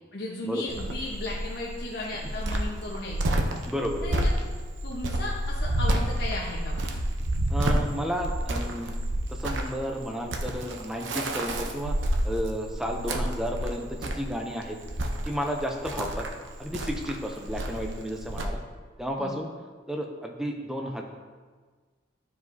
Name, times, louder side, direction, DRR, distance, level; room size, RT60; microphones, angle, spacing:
voice 1, 0.1-3.4 4.0-4.3 4.8-6.9 19.2-19.5, left 2 dB, 60° left, -5 dB, 1.0 m, -35 dB
Cricket, 0.7-18.5, right 1 dB, 85° right, 0.7 m, -29 dB
voice 2, 3.7-4.2 7.5-8.9 9.3-12.0 12.2-14.8 15.2-16.2 16.6-18.6 19.0-19.5 19.9-21.0, equal, 5° right, 2 dB, 0.5 m, -32 dB
12.0 x 4.8 x 2.7 m, 1.5 s
head